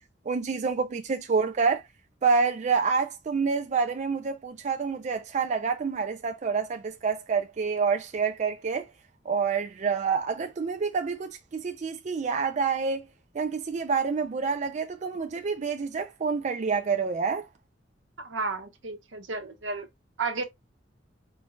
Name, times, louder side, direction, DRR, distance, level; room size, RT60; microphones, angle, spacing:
voice 1, 0.3-1.8 2.2-8.9 9.3-13.1 13.3-17.5, right 5 dB, 40° right, 0.4 m, -27 dB
voice 2, 18.2-19.9 20.2-20.4, right 4 dB, 80° right, 1.0 m, -32 dB
4.5 x 2.3 x 3.1 m
head